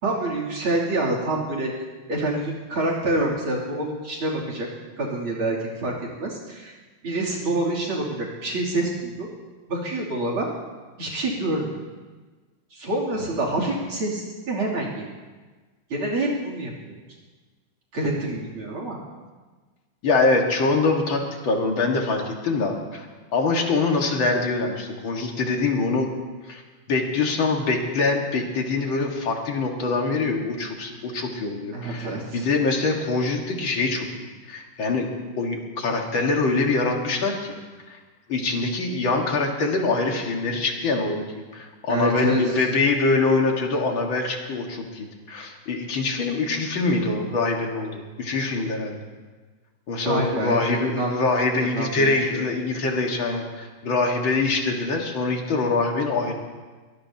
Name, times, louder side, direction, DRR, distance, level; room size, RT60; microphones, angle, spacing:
voice 1, 0.0-1.7 2.1-4.7 5.0-5.9 6.2-6.7 7.0-9.3 9.7-10.5 11.0-11.8 12.7-15.1 15.9-17.0 17.9-19.0 31.7-32.5 41.9-42.7 50.0-51.1 51.7-52.4, right 2 dB, 80° right, -2 dB, 3.9 m, -27 dB
voice 2, 20.0-23.1 23.3-26.1 26.5-26.6 26.9-34.1 34.5-35.1 35.4-37.6 37.9-38.0 38.3-49.1 49.9-56.3, left 3 dB, 70° left, 1 dB, 2.5 m, -24 dB
22.5 x 20.0 x 2.9 m, 1.3 s
omnidirectional pair, 2.2 m